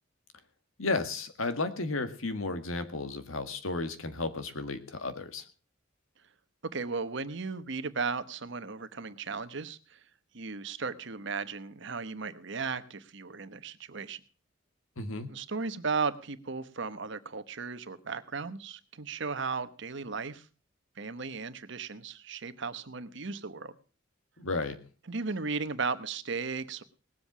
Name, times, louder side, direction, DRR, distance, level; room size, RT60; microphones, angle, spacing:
voice 1, 0.8-5.4 15.0-15.3 24.4-24.8, left 3 dB, 90° left, 9 dB, 1.8 m, -33 dB
voice 2, 6.7-10.0 10.3-14.2 15.3-20.5 21.0-23.7 25.1-26.8, right 4 dB, 60° right, 12 dB, 1.0 m, -35 dB
19.0 x 7.8 x 6.0 m, 0.37 s
head